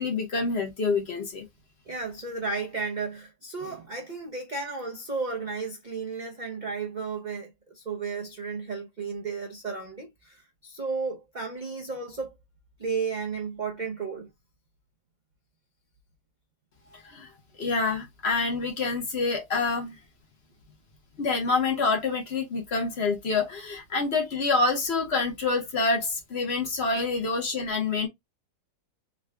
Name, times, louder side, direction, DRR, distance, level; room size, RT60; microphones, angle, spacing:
voice 1, 0.0-1.5 16.9-17.3 17.6-20.0 21.2-28.1, left 3 dB, 50° left, 1.0 m, -27 dB
voice 2, 1.9-12.3 12.8-14.3, right 4 dB, 55° right, 0.5 m, -33 dB
3.7 x 2.2 x 3.3 m
omnidirectional pair, 1.7 m